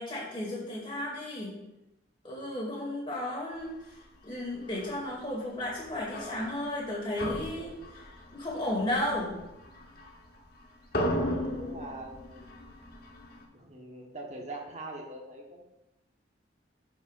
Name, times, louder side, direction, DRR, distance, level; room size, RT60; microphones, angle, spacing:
voice 1, 0.0-1.5 2.2-3.7 4.2-8.0 8.3-9.3, left 1 dB, 25° left, -5 dB, 2.3 m, -33 dB
sound 1, 4.7-5.1 5.7-6.8 7.2-10.5 10.8-13.4, equal, 50° left, 1.1 m, -36 dB
voice 2, 10.9-12.5 13.5-15.6, right 2 dB, 35° right, 0 dB, 1.2 m, -43 dB
12.0 x 5.4 x 2.5 m, 0.95 s
head